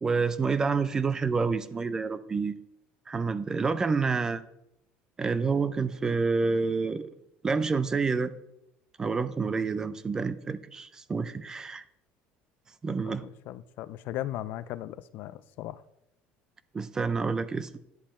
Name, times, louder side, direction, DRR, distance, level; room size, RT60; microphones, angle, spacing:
voice 1, 0.0-2.6 3.1-4.4 5.2-7.1 7.4-8.3 9.0-11.8 12.8-13.2 16.7-17.7, right 4 dB, 15° right, 0.4 m, -28 dB
voice 2, 12.9-15.8, left 14 dB, 50° left, 0.4 m, -37 dB
10.5 x 7.5 x 4.3 m
cardioid pair, 170°, 4 cm